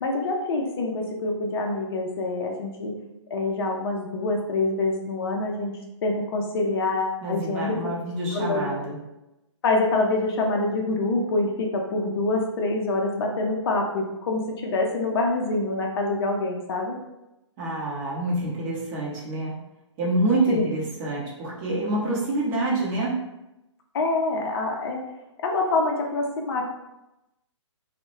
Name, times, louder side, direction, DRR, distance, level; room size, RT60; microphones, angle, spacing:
voice 1, 0.0-2.9 3.3-7.8 8.3-8.8 9.6-17.0 20.5-20.6 23.9-25.0 25.4-26.7, left 2 dB, 50° left, 1 dB, 0.4 m, -26 dB
voice 2, 7.2-9.0 17.6-19.5 20.0-23.2, right 2 dB, 25° right, -5 dB, 0.6 m, -27 dB
2.2 x 2.0 x 3.0 m, 0.93 s
figure-of-eight pair, 130°, 16 cm